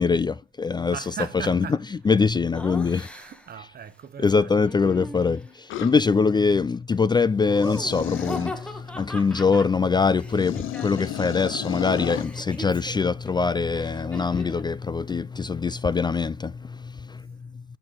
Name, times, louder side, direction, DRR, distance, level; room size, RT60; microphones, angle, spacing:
voice 1, 0.0-1.0 1.5-1.6 2.1-3.1 4.2-17.6, left 5 dB, 20° left, 0.3 m, -23 dB
voice 2, 0.9-2.0 3.1-4.7, right 8 dB, 50° right, 1.1 m, -38 dB
Laughter, 2.5-3.6 4.6-5.7 7.4-11.3 11.6-14.7, equal, 5° left, 1.5 m, -39 dB
sound 1, 5.7-5.9 7.5-8.5 10.3-12.3, left 13 dB, 85° left, 0.6 m, -33 dB
8.5 x 4.4 x 3.9 m
cardioid pair, 90°, 20 cm